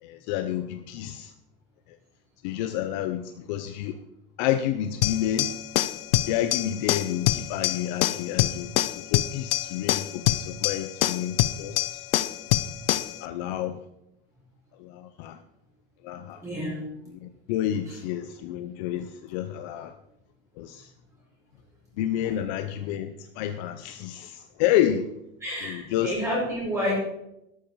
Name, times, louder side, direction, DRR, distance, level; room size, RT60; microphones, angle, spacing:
voice 1, 0.0-1.3 2.4-4.0 4.4-5.6 6.3-12.0 13.2-13.8 14.8-15.4 16.0-16.4 17.1-19.9 20.6-20.9 22.0-25.1 25.6-26.2, left 11 dB, 50° left, 9 dB, 0.7 m, -29 dB
sound 1, 5.0-13.2, left 14 dB, 80° left, 0.8 m, -25 dB
voice 2, 16.4-16.8 25.4-26.9, equal, 10° right, -5 dB, 5.0 m, -29 dB
12.5 x 12.0 x 4.7 m, 0.86 s
supercardioid pair, 175°, 29 cm